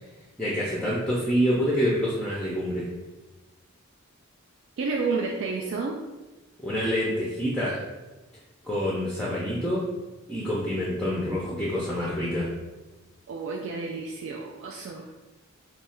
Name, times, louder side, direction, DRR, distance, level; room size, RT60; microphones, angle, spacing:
voice 1, 0.4-2.9 6.6-7.8 8.6-9.9 10.3-12.5, equal, 5° left, -7 dB, 0.4 m, -27 dB
voice 2, 4.8-6.0 13.3-15.1, right 4 dB, 60° right, 0 dB, 0.3 m, -30 dB
3.1 x 2.3 x 4.2 m, 1.2 s
head